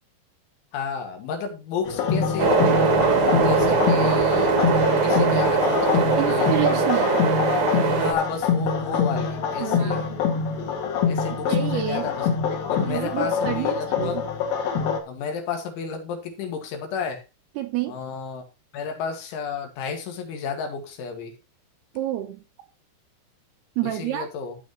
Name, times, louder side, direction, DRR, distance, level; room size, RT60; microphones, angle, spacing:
voice 1, 0.7-2.6 3.1-6.6 7.9-10.0 11.1-14.3 15.1-17.2 17.9-18.4 18.7-21.4 23.8-24.6, left 5 dB, 80° left, 4.2 m, -32 dB
sound 1, 1.8-15.0, left 6 dB, 55° left, 3.4 m, -25 dB
sound 2, 2.4-8.1, right 4 dB, 55° right, 1.6 m, -21 dB
voice 2, 6.2-7.3 9.6-10.2 11.5-12.1 12.8-14.2 17.6-18.0 22.0-22.4 23.8-24.3, right 13 dB, 80° right, 2.4 m, -28 dB
14.5 x 6.9 x 3.0 m
omnidirectional pair, 5.4 m